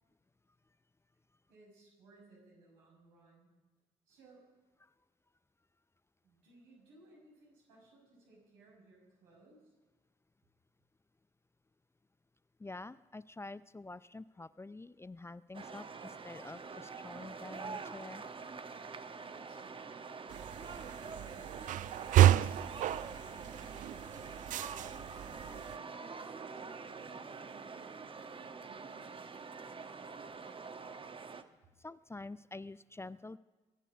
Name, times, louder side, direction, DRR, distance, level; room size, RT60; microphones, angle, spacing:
voice 1, 1.5-3.5 4.0-4.4 6.2-9.7 19.2-19.9 20.5-24.5 24.9-29.2, right 2 dB, 75° right, -2 dB, 6.2 m, -62 dB
voice 2, 12.6-18.2 31.8-33.4, left 2 dB, 15° left, 17 dB, 0.5 m, -47 dB
sound 1, 15.5-31.4, right 5 dB, 35° right, 1.1 m, -46 dB
sound 2, 20.3-25.8, right 13 dB, 55° right, 0.4 m, -31 dB
22.0 x 10.0 x 6.0 m, 1.3 s
figure-of-eight pair, 40°, 16 cm